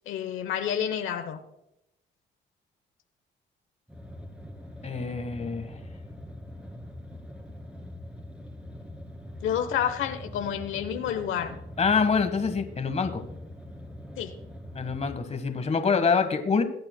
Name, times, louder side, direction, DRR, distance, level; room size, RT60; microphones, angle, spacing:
voice 1, 0.1-1.4 9.4-11.6 14.2-14.3, left 9 dB, 85° left, 7 dB, 1.0 m, -29 dB
sound 1, 3.9-15.2, left 1 dB, 5° right, 2.3 m, -43 dB
voice 2, 4.8-5.8 11.8-13.2 14.7-16.6, left 5 dB, 35° left, 8 dB, 1.4 m, -25 dB
20.0 x 8.8 x 2.2 m, 0.83 s
cardioid pair, 90°, 20 cm